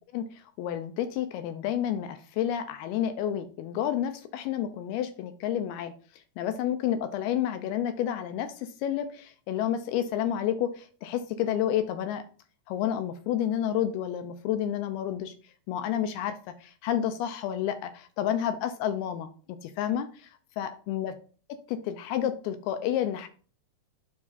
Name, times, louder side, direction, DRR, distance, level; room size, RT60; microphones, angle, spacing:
voice 1, 0.1-5.9 6.4-12.2 12.7-15.3 15.7-20.3 20.6-21.1 21.7-23.3, left 10 dB, 85° left, 9 dB, 2.3 m, -30 dB
6.1 x 4.8 x 4.0 m, 0.41 s
omnidirectional pair, 4.8 m